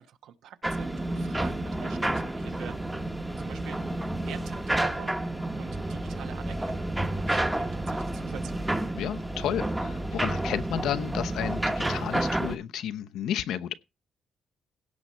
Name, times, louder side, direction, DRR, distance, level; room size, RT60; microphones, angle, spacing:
voice 1, 0.0-2.8 3.4-3.8 4.2-5.2 5.6-8.7, right 9 dB, 75° right, 1.1 m, -45 dB
sound 1, 0.6-12.6, right 1 dB, 10° right, 1.0 m, -30 dB
voice 2, 8.9-13.7, left 10 dB, 75° left, 0.8 m, -32 dB
16.5 x 6.2 x 4.3 m
cardioid pair, 150°, 0 cm